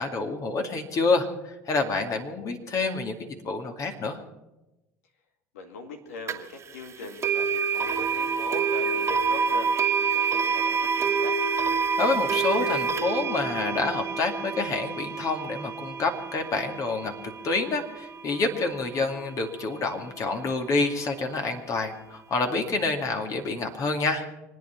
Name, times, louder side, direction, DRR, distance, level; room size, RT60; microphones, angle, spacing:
voice 1, 0.0-4.2 11.8-17.1 17.4-24.3, left 3 dB, 45° left, 4 dB, 2.3 m, -28 dB
voice 2, 5.5-9.7 10.0-11.4, left 3 dB, 85° left, 5 dB, 2.2 m, -40 dB
sound 1, 6.3-6.4 7.2-18.2, right 6 dB, 35° right, 1.6 m, -27 dB
25.5 x 9.3 x 5.9 m, 1.0 s
hypercardioid pair, 75°, 8 cm